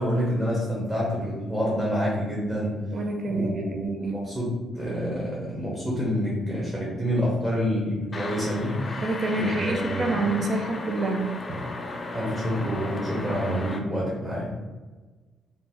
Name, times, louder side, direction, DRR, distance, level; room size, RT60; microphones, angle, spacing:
voice 1, 0.0-2.8 3.3-9.0 9.4-10.5 12.1-14.6, equal, 10° right, -6 dB, 0.8 m, -28 dB
voice 2, 2.9-4.2 9.0-11.6, right 2 dB, 50° right, 3 dB, 0.5 m, -28 dB
sound 1, 8.1-13.8, left 2 dB, 35° left, 0.3 m, -35 dB
2.7 x 2.0 x 3.4 m, 1.3 s
cardioid pair, 90°, 0 cm